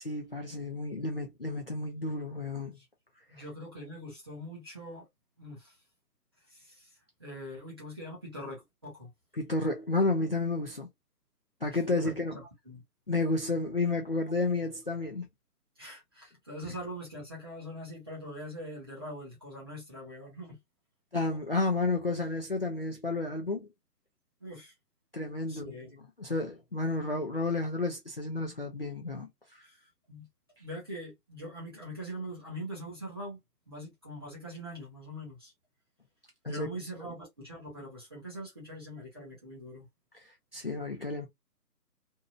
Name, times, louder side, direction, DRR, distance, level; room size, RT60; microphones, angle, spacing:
voice 1, 0.0-2.8 9.4-10.9 11.6-12.4 13.1-15.3 21.1-23.7 25.1-25.7 26.2-29.3 36.4-36.7 40.5-41.3, left 2 dB, 40° left, 0.5 m, -31 dB
voice 2, 3.3-5.1 5.4-5.8 6.5-9.1 11.7-12.8 15.8-20.6 24.4-24.7 25.5-25.9 29.6-29.8 30.1-30.3 30.6-33.4 33.7-35.5 36.5-39.8, equal, 15° right, 0.8 m, -43 dB
2.7 x 2.3 x 2.9 m
hypercardioid pair, 160°, 48 cm